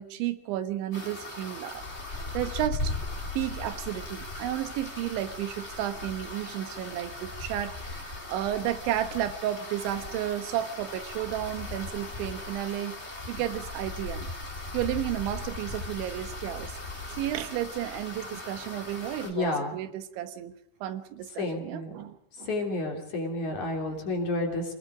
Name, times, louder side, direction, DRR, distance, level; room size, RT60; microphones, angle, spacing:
voice 1, 0.0-2.9 3.4-13.0 13.3-14.3 14.7-16.8 17.2-20.5 20.8-22.5 23.4-24.0, right 12 dB, 85° right, 10 dB, 3.6 m, -33 dB
sound 1, 0.9-19.3, left 2 dB, 15° left, 2.9 m, -38 dB
voice 2, 19.2-19.7 21.4-21.9 22.5-24.7, left 2 dB, 45° left, 2 dB, 4.2 m, -30 dB
27.5 x 20.0 x 5.0 m, 0.70 s
omnidirectional pair, 5.2 m